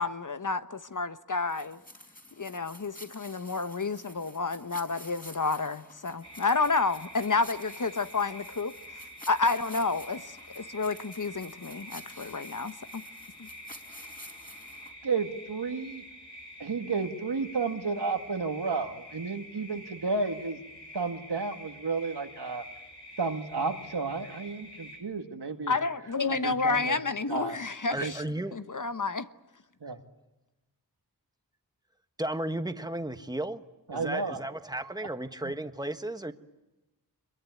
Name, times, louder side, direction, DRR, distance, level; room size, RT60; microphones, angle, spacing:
voice 1, 0.0-1.8 2.4-8.7 9.3-13.0 13.4-13.5 25.7-28.2 28.5-29.3, left 4 dB, 50° left, 1.1 m, -30 dB
sound 1, 1.5-14.9, left 1 dB, 20° left, 4.4 m, -50 dB
sound 2, 6.2-25.0, equal, 75° left, 6.6 m, -47 dB
voice 2, 15.0-16.0 16.6-20.6 20.9-22.6 23.2-25.7 26.3-27.0 27.3-27.6 28.0-28.1 29.8-30.0 33.9-34.4 35.4-35.5, right 4 dB, 80° right, 2.0 m, -32 dB
voice 3, 27.9-28.5 32.2-33.6 33.9-36.3, right 1 dB, 10° right, 1.4 m, -34 dB
25.5 x 22.5 x 9.4 m
wide cardioid pair, 50°, 39 cm